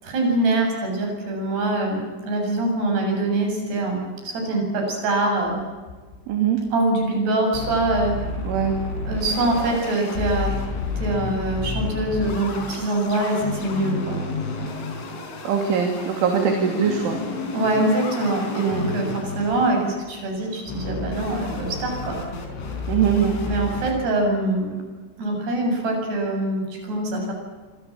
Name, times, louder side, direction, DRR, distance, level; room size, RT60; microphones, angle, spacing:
voice 1, 0.0-5.6 6.7-8.2 9.1-10.5 11.0-14.2 17.5-22.2 23.4-24.8 25.2-27.3, right 2 dB, 50° right, 2 dB, 9.3 m, -24 dB
sound 1, 5.5-6.4 6.7-6.8 7.0-7.1 7.5-23.9, left 3 dB, 70° left, 7.2 m, -31 dB
voice 2, 6.3-6.6 8.4-8.8 15.4-17.2 18.6-18.9 22.9-23.4, right 7 dB, 70° right, 3 dB, 5.1 m, -22 dB
27.5 x 26.0 x 7.4 m, 1.4 s
omnidirectional pair, 5.9 m